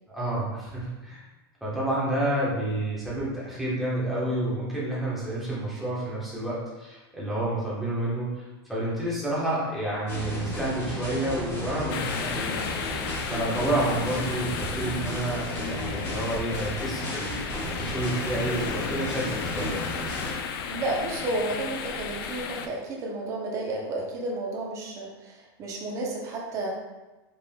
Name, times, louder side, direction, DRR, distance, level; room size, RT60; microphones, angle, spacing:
voice 1, 0.1-1.2 1.6-8.4 8.7-12.5 13.2-19.8, right 1 dB, ahead, -9 dB, 1.2 m, -29 dB
sound 1, 10.1-20.3, equal, 20° left, 1.3 m, -34 dB
sound 2, 11.9-22.7, left 6 dB, 60° left, 0.4 m, -34 dB
voice 2, 15.5-15.8 19.6-19.9 20.7-26.7, right 2 dB, 25° right, -1 dB, 0.8 m, -32 dB
5.1 x 3.8 x 2.3 m, 1.1 s
supercardioid pair, 165°, 13 cm